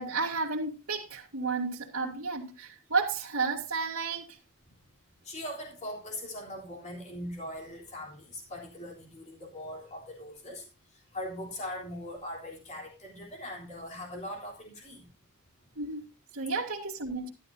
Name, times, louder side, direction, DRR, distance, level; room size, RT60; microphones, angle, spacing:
voice 1, 0.0-4.4 15.8-16.0 16.3-17.3, right 4 dB, 60° right, 2.3 m, -32 dB
voice 2, 5.3-10.6 11.1-15.1 16.5-16.6, left 1 dB, 35° left, 3.4 m, -40 dB
12.5 x 12.5 x 2.7 m
head